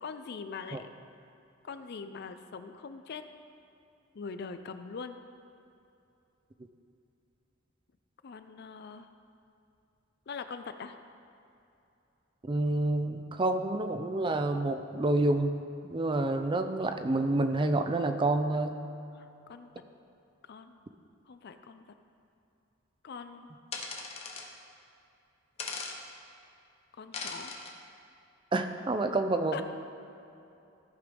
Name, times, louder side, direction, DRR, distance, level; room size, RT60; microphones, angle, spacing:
voice 1, 0.0-0.9 1.6-3.2 4.1-5.2 8.2-9.1 10.3-11.0 19.1-19.7 20.5-20.8 21.3-21.8 23.0-23.5 27.0-27.5 29.5-29.6, left 5 dB, 55° left, 9 dB, 0.4 m, -42 dB
voice 2, 12.4-15.6 15.9-18.8 28.5-29.6, right 2 dB, 25° right, 7 dB, 0.4 m, -28 dB
sound 1, 23.7-24.5 25.6-26.0 27.1-27.7, left 4 dB, 30° left, 0.8 m, -38 dB
14.5 x 5.2 x 3.5 m, 2.7 s
head